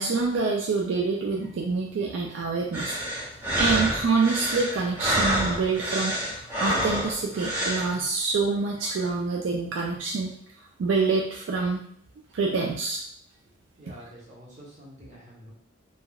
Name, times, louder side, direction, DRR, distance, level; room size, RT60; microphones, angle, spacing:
voice 1, 0.0-3.0 3.5-10.4 10.8-11.9 12.3-13.0, right 4 dB, 70° right, -1 dB, 0.3 m, -26 dB
sound 1, 2.7-7.9, equal, 10° right, 0.7 m, -28 dB
voice 2, 13.8-15.5, equal, 35° right, -5 dB, 0.9 m, -47 dB
3.2 x 2.2 x 2.3 m, 0.65 s
head